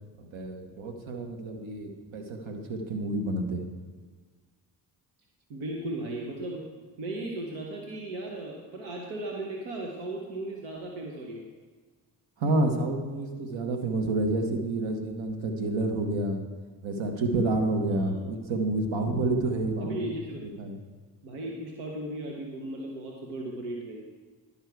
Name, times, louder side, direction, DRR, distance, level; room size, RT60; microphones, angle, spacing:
voice 1, 0.2-3.6 12.4-16.4 16.8-20.1 20.4-20.8, right 2 dB, 65° right, 4 dB, 1.4 m, -29 dB
voice 2, 5.5-6.6 7.0-11.4 17.9-18.1 19.8-20.4 21.2-24.0, right 1 dB, 90° right, 0 dB, 1.0 m, -36 dB
11.0 x 5.5 x 4.6 m, 1.5 s
hypercardioid pair, 40°, 49 cm